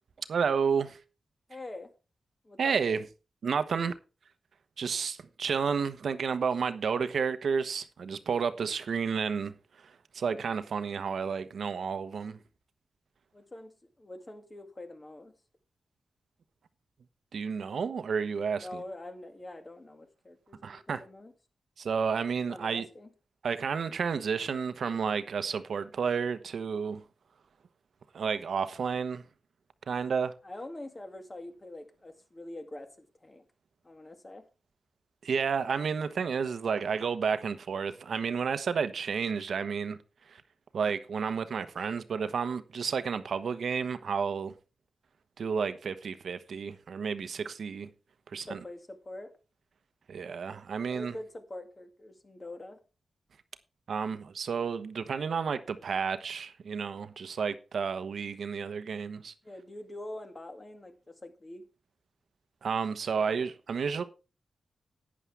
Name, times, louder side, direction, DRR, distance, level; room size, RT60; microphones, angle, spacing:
voice 1, 0.3-1.0 2.6-3.0 3.4-3.9 4.8-12.4 17.3-18.7 20.6-21.0 21.8-22.9 23.4-27.0 28.1-29.2 29.9-30.3 35.2-40.0 40.3-40.4 40.7-44.5 45.4-47.9 48.3-48.6 50.1-51.1 53.9-59.3 62.6-64.0, right 6 dB, 75° right, 1.1 m, -31 dB
voice 2, 1.5-1.9 2.4-2.8 13.3-15.3 18.6-21.3 22.5-23.1 30.4-33.4 33.8-34.5 48.3-49.3 50.9-52.8 59.4-61.7 63.1-63.4 63.9-64.0, left 1 dB, 25° left, 2.0 m, -45 dB
11.5 x 9.9 x 3.4 m
wide cardioid pair, 95°, 0 cm